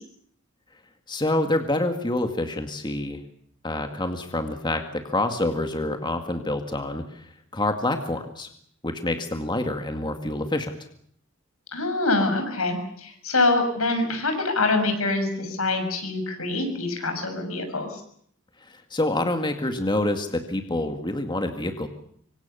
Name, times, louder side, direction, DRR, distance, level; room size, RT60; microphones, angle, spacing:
voice 1, 1.1-3.2 3.6-8.5 8.8-10.7 18.6-21.9, left 2 dB, 20° left, 6 dB, 2.1 m, -27 dB
voice 2, 11.7-18.0, left 2 dB, 90° left, 6 dB, 6.9 m, -25 dB
25.5 x 25.0 x 7.0 m, 0.64 s
head